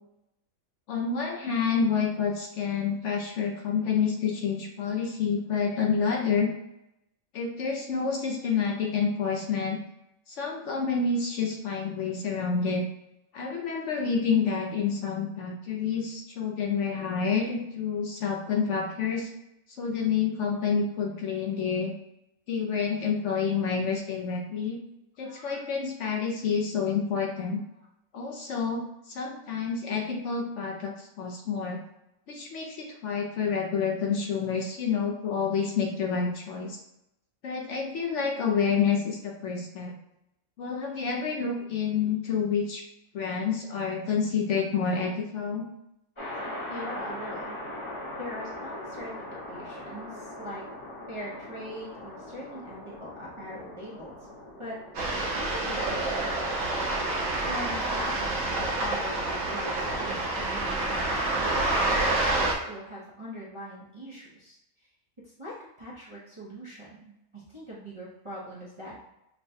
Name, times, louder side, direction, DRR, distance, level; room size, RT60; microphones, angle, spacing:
voice 1, 0.9-6.5 7.3-9.8 10.3-12.8 13.3-19.3 19.8-21.9 22.5-24.8 25.2-27.6 28.1-31.8 32.3-36.8 37.4-39.9 40.6-42.8 43.1-45.7, left 6 dB, 65° left, 1 dB, 0.9 m, -28 dB
voice 2, 25.2-25.6 46.7-47.6 48.2-49.1 49.5-50.7 51.1-54.2 54.6-54.8 55.3-56.5 57.3-64.9 65.2-68.9, equal, 30° right, -7 dB, 0.6 m, -42 dB
sound 1, 46.2-60.1, left 1 dB, 25° left, 0.8 m, -42 dB
sound 2, 54.9-62.5, right 2 dB, 75° right, 1.2 m, -28 dB
5.5 x 2.2 x 2.6 m, 0.87 s
omnidirectional pair, 1.4 m